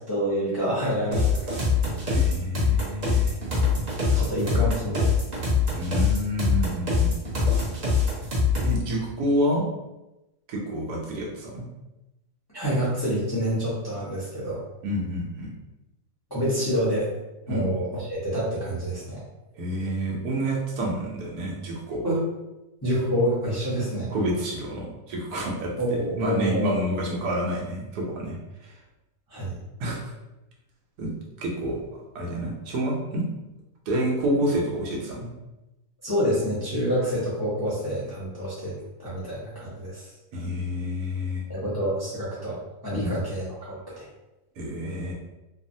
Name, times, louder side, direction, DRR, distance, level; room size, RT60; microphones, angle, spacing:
voice 1, 0.1-1.6 4.1-5.2 12.5-14.6 16.3-17.1 17.5-19.2 22.0-22.2 22.8-24.1 25.8-26.7 29.3-29.6 36.0-38.7 39.0-40.1 41.5-44.0, equal, 25° left, -10 dB, 0.5 m, -27 dB
sound 1, 1.1-8.8, left 4 dB, 40° right, 0.6 m, -23 dB
voice 2, 2.1-3.4 4.1-4.3 5.7-7.2 8.6-9.7 10.5-11.6 14.8-15.5 17.5-17.6 19.5-22.0 24.1-28.8 29.8-30.1 31.0-31.1 31.4-31.8 32.1-33.2 33.9-35.3 40.3-41.4 43.0-43.1 44.6-45.1, equal, 85° right, -2 dB, 1.2 m, -28 dB
3.1 x 2.0 x 2.6 m, 0.98 s
omnidirectional pair, 1.7 m